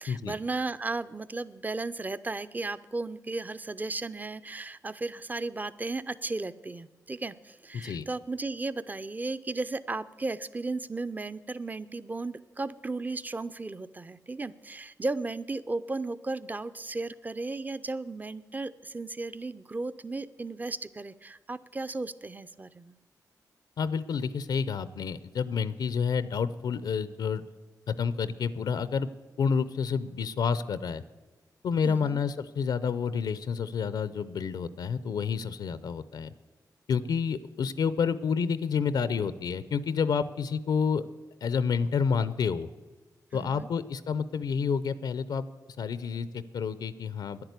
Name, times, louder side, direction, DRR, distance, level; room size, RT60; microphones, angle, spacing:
voice 1, 0.0-23.0 31.8-32.2 43.3-43.7, right 3 dB, 25° right, 15 dB, 0.5 m, -35 dB
voice 2, 7.7-8.1 23.8-27.4 27.9-29.1 29.4-31.0 31.6-36.3 36.9-41.1 41.4-42.7 43.3-45.5 45.8-47.4, left 6 dB, 80° left, 15 dB, 0.5 m, -29 dB
10.5 x 10.0 x 8.1 m, 1.2 s
cardioid pair, 65°, 7 cm